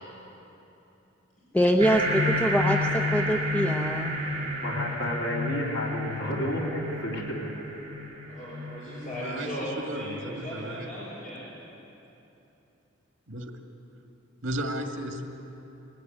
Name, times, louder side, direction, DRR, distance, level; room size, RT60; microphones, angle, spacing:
voice 1, 1.5-4.1, equal, 10° left, 2 dB, 0.7 m, -24 dB
sound 1, 1.8-10.7, left 1 dB, 30° right, 3.8 m, -31 dB
voice 2, 4.2-7.5, equal, 70° left, -2 dB, 3.0 m, -31 dB
voice 3, 8.3-11.4, equal, 40° left, -7 dB, 4.9 m, -37 dB
voice 4, 9.1-10.9 13.3-13.5 14.4-15.2, right 1 dB, 85° right, 3 dB, 2.0 m, -34 dB
21.0 x 15.0 x 9.5 m, 2.9 s
head